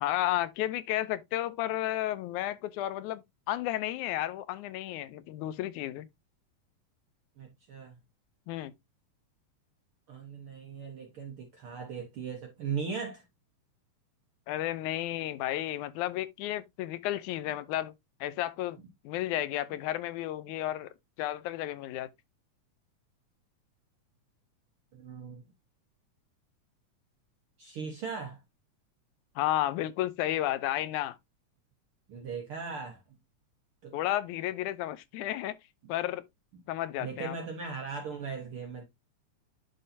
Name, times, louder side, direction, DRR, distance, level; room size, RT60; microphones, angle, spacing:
voice 1, 0.0-6.1 8.5-8.7 14.5-17.9 18.2-18.8 19.1-20.9 21.2-22.1 29.4-31.2 33.9-35.6 35.9-36.2 36.7-37.3, left 14 dB, 80° left, 2.0 m, -32 dB
voice 2, 7.4-8.0 10.1-13.3 18.8-18.9 24.9-25.4 27.6-28.4 32.1-33.0 33.8-34.0 36.5-36.6 37.0-38.8, right 5 dB, 60° right, 1.6 m, -38 dB
11.5 x 3.9 x 2.7 m
omnidirectional pair, 3.6 m